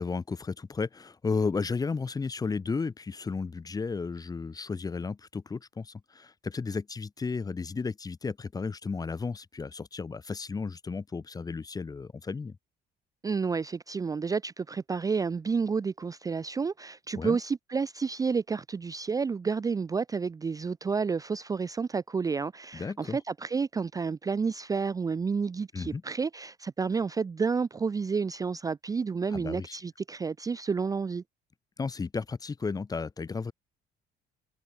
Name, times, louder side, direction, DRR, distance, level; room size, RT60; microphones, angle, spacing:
voice 1, 0.0-12.6 17.1-17.4 22.7-23.2 25.7-26.0 29.3-29.8 31.8-33.5, left 4 dB, 20° left, 1.0 m, -33 dB
voice 2, 13.2-31.2, right 5 dB, 20° right, 0.5 m, -30 dB
cardioid pair, 110°, 17 cm